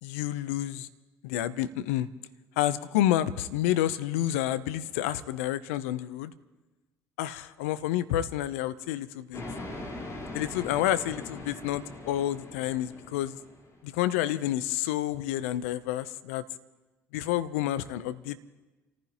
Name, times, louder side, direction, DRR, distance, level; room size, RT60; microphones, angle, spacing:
voice 1, 0.0-0.9 1.2-2.1 2.6-6.3 7.2-9.4 10.3-13.4 13.8-16.4 17.1-18.4, left 13 dB, 80° left, 14 dB, 0.6 m, -29 dB
sound 1, 9.3-13.8, left 2 dB, 45° left, 4.2 m, -41 dB
29.5 x 15.0 x 2.9 m, 1.1 s
hypercardioid pair, 55°, 7 cm